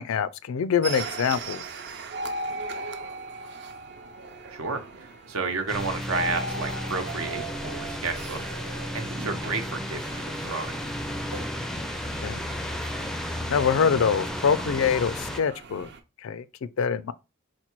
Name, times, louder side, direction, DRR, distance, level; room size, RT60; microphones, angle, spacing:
voice 1, 0.0-1.6 12.2-12.4 13.5-15.9 16.2-17.1, left 6 dB, 70° left, 0.4 m, -25 dB
sound 1, 0.8-16.0, right 2 dB, 55° right, 0.5 m, -38 dB
voice 2, 4.5-8.7 8.9-10.8, right 4 dB, 85° right, 0.8 m, -32 dB
sound 2, 5.7-15.4, left 1 dB, ahead, 0.4 m, -33 dB
4.3 x 2.2 x 4.4 m
head